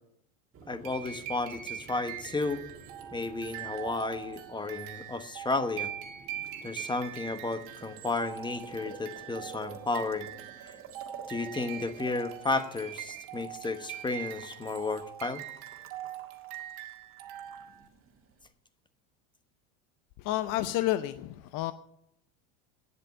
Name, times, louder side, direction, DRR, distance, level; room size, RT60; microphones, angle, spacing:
Boiling, 0.5-18.5, right 6 dB, 35° right, 1.9 m, -52 dB
voice 1, 0.7-2.6 3.1-5.9 6.6-10.3 10.6-10.8 11.3-15.4, left 3 dB, 10° left, 10 dB, 1.1 m, -33 dB
sound 1, 0.8-17.9, right 11 dB, 65° right, 1.9 m, -42 dB
voice 2, 20.2-21.7, left 14 dB, 55° left, 12 dB, 0.7 m, -30 dB
9.7 x 7.6 x 9.2 m, 0.74 s
supercardioid pair, 105°, 39 cm